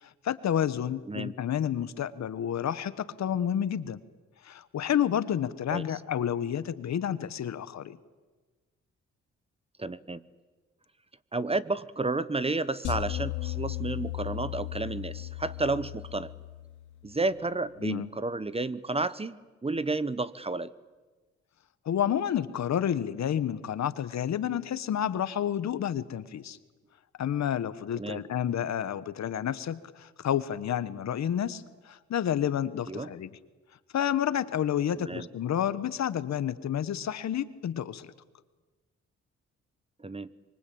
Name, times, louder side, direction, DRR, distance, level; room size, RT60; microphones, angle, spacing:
voice 1, 0.0-4.0 4.4-8.0 17.8-18.1 21.8-26.6 27.2-33.3 33.9-38.1, left 9 dB, 65° left, 15 dB, 1.3 m, -30 dB
voice 2, 9.8-10.2 11.3-16.3 17.0-20.7 27.9-28.2 32.9-33.1 35.0-35.3 40.0-40.3, right 3 dB, 20° right, 16 dB, 1.0 m, -31 dB
sound 1, 12.8-17.2, left 16 dB, 85° left, 2.1 m, -36 dB
25.0 x 23.5 x 8.7 m, 1.3 s
cardioid pair, 90°, 29 cm